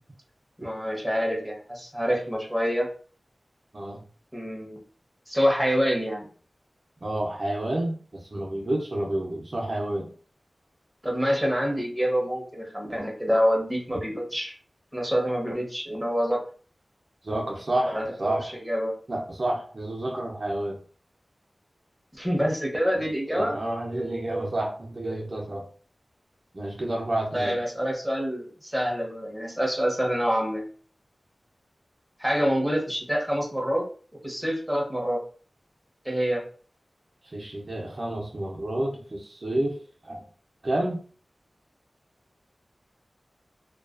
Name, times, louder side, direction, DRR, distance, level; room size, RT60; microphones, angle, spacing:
voice 1, 0.6-2.9 4.3-4.8 5.3-6.3 11.0-14.5 14.9-16.4 17.9-18.9 22.1-23.6 27.3-30.7 32.2-33.8 34.2-35.2 36.0-36.4, equal, 5° right, -1 dB, 0.8 m, -26 dB
voice 2, 7.0-10.1 17.2-18.5 19.1-20.8 22.9-23.1 23.3-25.7 26.5-27.6 37.3-40.3 40.6-41.0, right 1 dB, 50° right, -1 dB, 0.5 m, -30 dB
2.3 x 2.2 x 2.4 m, 0.42 s
wide cardioid pair, 65°, 0 cm